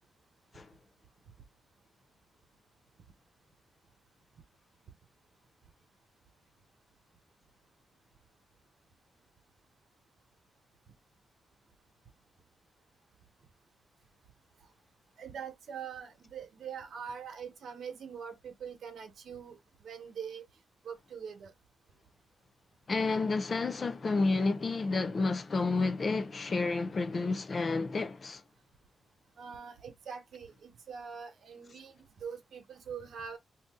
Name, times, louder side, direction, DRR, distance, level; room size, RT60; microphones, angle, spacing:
voice 1, 15.2-20.4 20.8-21.5 29.4-33.4, right 7 dB, 70° right, 1.1 m, -43 dB
voice 2, 22.9-28.4, left 3 dB, 35° left, 0.5 m, -30 dB
2.7 x 2.6 x 3.6 m
cardioid pair, 120°, 0 cm